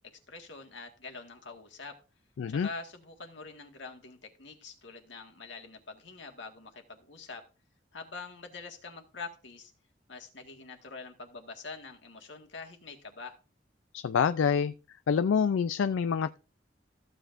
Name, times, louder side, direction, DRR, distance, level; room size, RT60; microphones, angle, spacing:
voice 1, 0.3-2.0 2.5-7.4 7.9-9.7 10.1-13.4, left 4 dB, 70° left, 1.7 m, -45 dB
voice 2, 2.4-2.7 13.9-14.7 15.1-16.4, left 6 dB, 90° left, 0.4 m, -26 dB
14.5 x 7.9 x 2.5 m
head